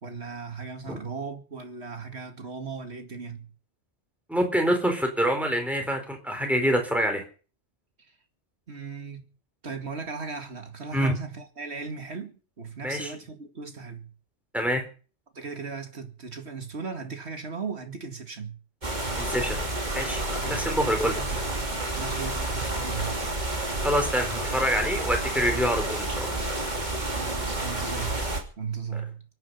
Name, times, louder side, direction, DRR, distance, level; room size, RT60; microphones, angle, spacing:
voice 1, 0.0-3.5 8.7-9.3 9.6-14.1 15.3-18.6 20.3-20.7 21.0-21.4 22.0-23.2 27.2-28.3 28.6-29.2, right 5 dB, 65° right, 2.4 m, -37 dB
voice 2, 4.3-7.2 10.9-11.2 12.8-13.1 14.5-14.8 19.2-19.6 19.9-21.2 23.8-26.4 28.9-29.0, equal, ahead, 4.1 m, -26 dB
sound 1, 18.8-28.4, right 2 dB, 40° right, 3.1 m, -30 dB
24.0 x 9.3 x 5.7 m
omnidirectional pair, 1.2 m